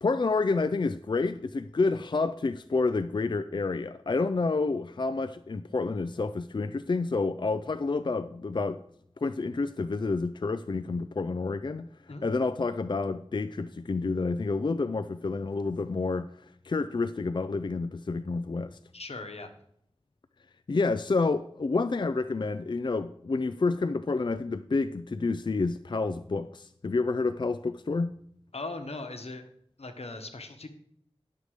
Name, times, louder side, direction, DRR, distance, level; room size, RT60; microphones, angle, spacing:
voice 1, 0.0-8.8 9.2-11.9 12.2-18.8 20.7-28.1, left 3 dB, 50° left, 0.4 m, -29 dB
voice 2, 18.9-19.5 28.5-29.5 29.8-30.7, left 2 dB, 80° left, 1.2 m, -39 dB
11.0 x 6.6 x 4.9 m
wide cardioid pair, 45°, 10 cm